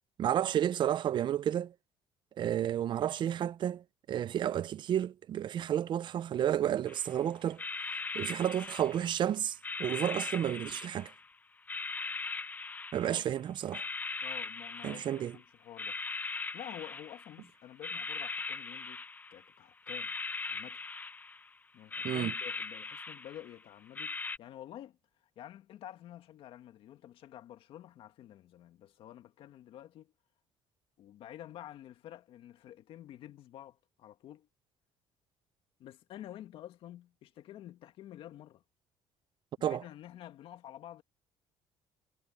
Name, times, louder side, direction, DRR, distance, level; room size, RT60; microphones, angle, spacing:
voice 1, 0.2-1.7 2.4-7.6 8.1-11.1 12.9-13.8 14.8-15.4 22.0-22.3 39.6-39.8, right 10 dB, 55° right, 0.7 m, -31 dB
sound 1, 6.9-7.2 7.5-9.2 9.6-11.3 11.7-13.3 13.7-15.4 15.8-17.5 17.8-19.5 19.9-21.5 21.9-23.5 24.0-24.4, left 3 dB, 15° left, 0.5 m, -40 dB
voice 2, 14.2-16.0 16.5-19.0 19.3-20.1 20.5-20.8 21.7-25.0 25.4-30.1 31.0-34.5 35.8-38.6 39.6-41.0, left 12 dB, 70° left, 2.0 m, -49 dB
cardioid pair, 100°, 10 cm